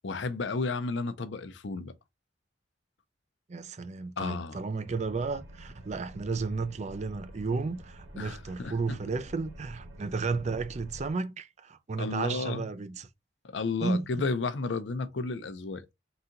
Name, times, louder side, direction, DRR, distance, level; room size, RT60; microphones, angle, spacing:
voice 1, 0.0-1.9 4.2-4.6 8.2-9.0 12.0-12.6 13.4-15.9, left 4 dB, 75° left, 0.6 m, -32 dB
voice 2, 3.5-13.1 13.8-14.1, right 4 dB, 40° right, 0.4 m, -33 dB
sound 1, 4.8-11.1, right 1 dB, 80° right, 1.4 m, -48 dB
3.9 x 2.8 x 3.8 m
head